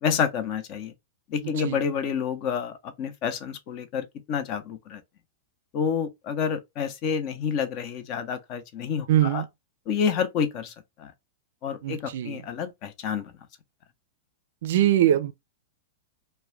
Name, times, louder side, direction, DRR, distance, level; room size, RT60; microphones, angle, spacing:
voice 1, 0.0-0.9 1.3-5.0 5.7-9.4 9.9-10.7 11.0-11.1 11.6-13.2, left 7 dB, 45° left, 0.5 m, -29 dB
voice 2, 9.1-9.5 11.8-12.4 14.6-15.3, right 12 dB, 70° right, 0.3 m, -22 dB
2.3 x 2.1 x 3.1 m
hypercardioid pair, 125°, 0 cm